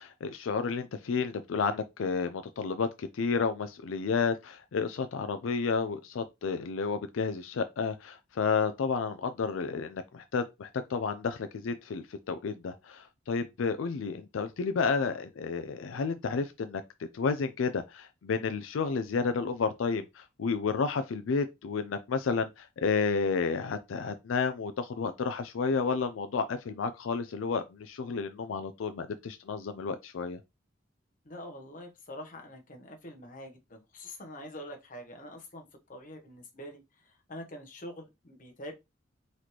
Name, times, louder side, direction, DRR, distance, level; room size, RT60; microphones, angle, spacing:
voice 1, 0.0-16.8 17.1-30.4, left 5 dB, 85° left, 0.4 m, -31 dB
voice 2, 31.2-38.7, left 1 dB, 45° left, 1.0 m, -45 dB
4.1 x 3.1 x 2.9 m
head